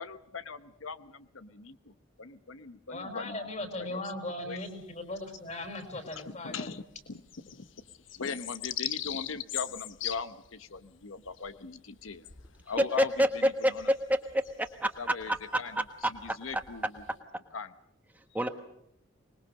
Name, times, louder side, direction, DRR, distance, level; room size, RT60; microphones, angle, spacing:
voice 1, 0.0-3.4 3.9-4.1 4.4-4.6 6.3-7.2 7.5-7.7 8.2-12.3 12.6-13.9 15.0-17.0 17.5-17.7, left 5 dB, 90° left, 12 dB, 0.9 m, -40 dB
voice 2, 2.9-6.7, left 1 dB, 35° left, 8 dB, 4.4 m, -38 dB
sound 1, 4.6-5.7 6.1-6.2 6.5-17.1, left 12 dB, 65° left, 1.1 m, -41 dB
voice 3, 13.0-13.3 13.6-14.9 15.3-15.4 15.7-15.8 16.2-16.3 18.3-18.5, equal, 10° right, 6 dB, 1.3 m, -27 dB
25.0 x 21.0 x 6.5 m, 0.76 s
head